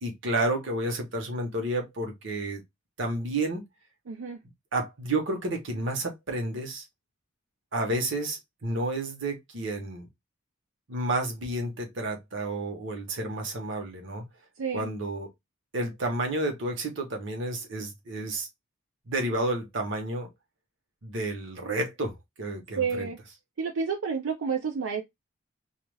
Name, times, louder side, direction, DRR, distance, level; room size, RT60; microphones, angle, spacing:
voice 1, 0.0-2.6 3.0-3.6 4.7-6.9 7.7-10.1 10.9-14.2 14.7-15.3 15.7-18.5 19.1-20.3 21.0-23.1, right 2 dB, 65° right, 0.9 m, -31 dB
voice 2, 4.1-4.4 14.6-14.9 22.8-23.2 23.6-25.0, right 6 dB, 85° right, 0.5 m, -30 dB
2.4 x 2.3 x 3.1 m
head